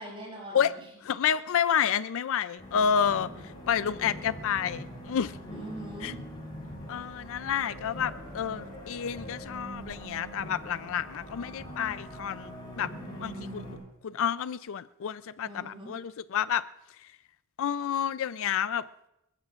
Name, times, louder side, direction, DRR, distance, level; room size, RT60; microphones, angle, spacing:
voice 1, 0.0-0.8 5.5-6.2 15.4-15.9, right 1 dB, 25° right, -3 dB, 7.1 m, -42 dB
voice 2, 1.0-5.4 6.0-6.1 6.9-12.9 13.2-13.7 14.0-16.6 17.6-18.8, left 8 dB, 65° left, 15 dB, 0.4 m, -29 dB
sound 1, 2.6-13.8, equal, 20° left, 6.9 m, -42 dB
28.0 x 15.0 x 2.5 m, 0.86 s
head